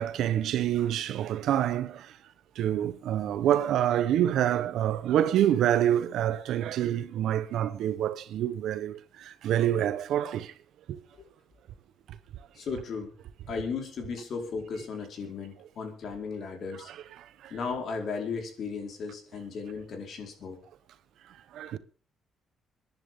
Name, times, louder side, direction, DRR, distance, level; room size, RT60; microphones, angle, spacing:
voice 1, 0.0-2.1 2.6-10.5 10.9-11.0 12.1-12.2 16.9-17.5 21.5-21.8, right 11 dB, 80° right, 1.0 m, -27 dB
voice 2, 12.5-13.1 13.5-16.9 17.5-20.6, left 5 dB, 65° left, 4.6 m, -35 dB
26.0 x 10.5 x 3.8 m
cardioid pair, 90°, 0 cm